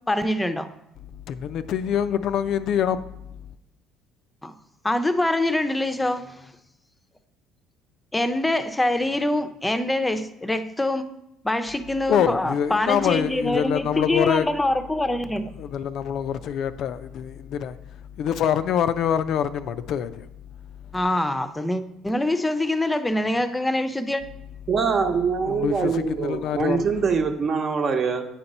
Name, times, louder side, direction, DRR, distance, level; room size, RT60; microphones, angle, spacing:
voice 1, 0.1-0.7 4.4-4.5 4.8-6.4 8.1-11.1 11.4-15.6 20.9-24.2, left 1 dB, 15° left, 0.6 m, -24 dB
voice 2, 1.3-3.0 12.1-14.5 15.6-17.8 18.2-20.3 25.5-26.9, left 9 dB, 65° left, 0.3 m, -25 dB
voice 3, 24.7-28.2, right 5 dB, 45° right, 0.9 m, -23 dB
8.6 x 2.9 x 5.3 m
hypercardioid pair, 65°, 0 cm